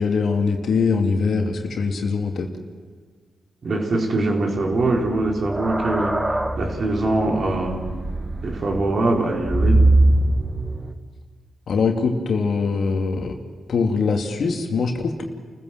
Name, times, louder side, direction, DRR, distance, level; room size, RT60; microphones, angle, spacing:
voice 1, 0.0-2.5 11.7-13.4 13.7-15.2, left 4 dB, 70° left, 4 dB, 2.4 m, -22 dB
voice 2, 3.6-7.9 8.4-9.9, right 2 dB, 60° right, 1 dB, 4.1 m, -23 dB
sound 1, 4.7-10.9, right 2 dB, 20° right, 1.9 m, -22 dB
29.5 x 15.0 x 7.6 m, 1.5 s
supercardioid pair, 45°, 0 cm